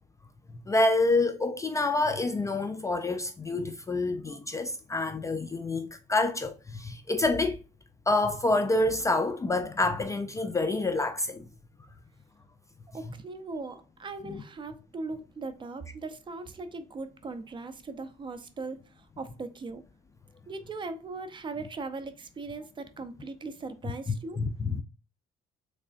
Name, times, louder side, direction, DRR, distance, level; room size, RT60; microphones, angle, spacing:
voice 1, 0.7-7.6 8.1-11.5 24.4-24.8, left 2 dB, 20° left, 0.3 m, -27 dB
voice 2, 12.9-19.8 20.5-24.4, right 3 dB, 30° right, 0.5 m, -39 dB
3.6 x 3.2 x 2.4 m
cardioid pair, 110°, 17 cm